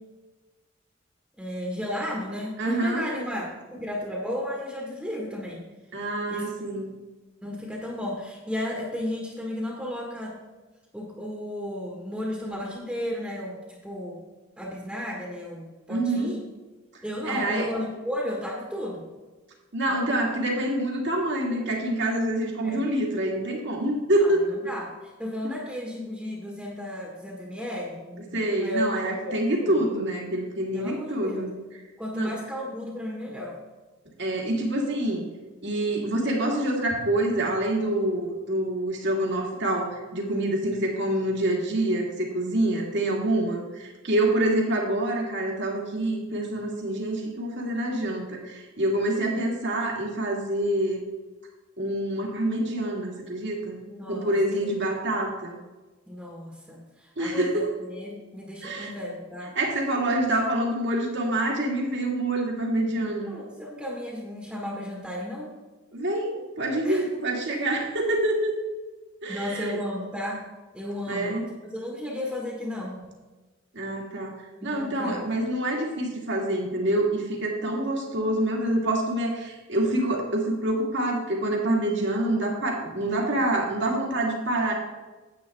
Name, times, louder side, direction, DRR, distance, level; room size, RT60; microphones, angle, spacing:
voice 1, 1.4-3.4 3.7-5.7 6.3-6.5 6.7-6.9 7.4-10.4 10.9-14.2 14.6-16.4 17.0-19.0 19.9-20.2 22.6-22.8 24.2-29.8 30.4-31.5 32.0-33.6 49.1-49.5 53.8-54.4 54.6-54.7 56.1-59.6 63.3-65.5 66.8-67.2 67.5-67.6 69.3-70.5 70.7-73.1 74.7-75.2, left 1 dB, 5° right, -2 dB, 1.4 m, -34 dB
voice 2, 2.6-3.1 5.9-6.9 15.9-16.4 17.2-17.7 19.7-24.4 28.3-31.5 32.1-32.3 34.2-35.3 35.6-51.0 51.8-53.8 54.1-55.5 57.2-57.7 58.6-58.9 59.6-63.3 65.9-68.5 69.2-69.8 71.1-71.4 73.7-74.3 74.6-84.7, right 1 dB, 65° right, 0 dB, 2.0 m, -26 dB
10.0 x 8.3 x 3.5 m, 1.2 s
head